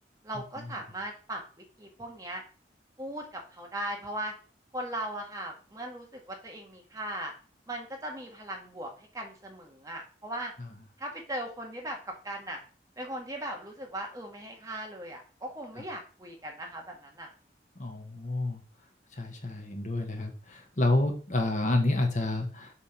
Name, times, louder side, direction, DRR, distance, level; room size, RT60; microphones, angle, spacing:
voice 1, 0.2-1.4 1.8-2.4 3.0-4.3 4.7-7.3 7.7-10.5 11.0-12.6 13.0-17.3, right 1 dB, 20° right, 1 dB, 1.4 m, -38 dB
voice 2, 17.8-18.6 19.2-22.7, left 2 dB, 45° left, 3 dB, 1.2 m, -29 dB
7.0 x 3.6 x 5.9 m, 0.37 s
head